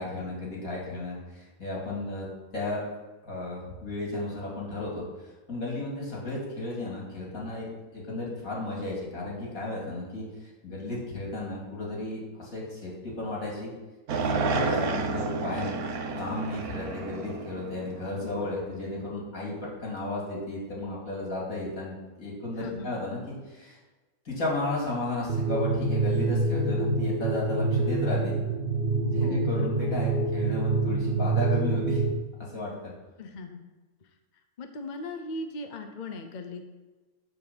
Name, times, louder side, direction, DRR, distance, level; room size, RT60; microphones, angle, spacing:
voice 1, 0.0-2.8 3.2-5.0 5.5-10.2 10.6-13.7 14.2-15.8 16.1-19.5 19.8-23.8 24.2-28.3 29.1-32.0 32.5-32.7, left 2 dB, 70° left, -4 dB, 3.3 m, -34 dB
sound 1, 14.1-18.4, right 4 dB, 85° right, 1.4 m, -30 dB
voice 2, 18.2-18.5 22.6-22.9 29.2-29.9 33.2-33.6 34.6-36.7, left 2 dB, 40° left, 6 dB, 0.8 m, -38 dB
sound 2, 25.3-32.1, right 3 dB, 50° right, 0.8 m, -26 dB
9.9 x 4.7 x 7.0 m, 1.2 s
omnidirectional pair, 1.5 m